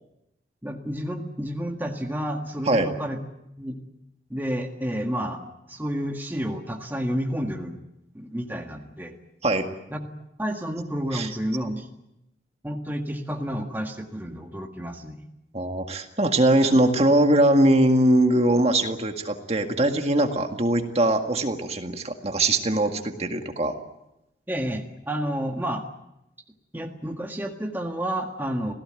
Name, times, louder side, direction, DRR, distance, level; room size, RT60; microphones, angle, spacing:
voice 1, 0.6-3.2 3.6-3.8 4.3-7.8 8.1-9.2 9.9-10.0 10.4-11.9 12.6-15.2 24.5-25.8 26.7-28.7, equal, 10° right, 2 dB, 1.7 m, -30 dB
voice 2, 15.5-23.7, right 1 dB, 35° right, 5 dB, 1.9 m, -21 dB
27.5 x 17.5 x 9.0 m, 0.87 s
head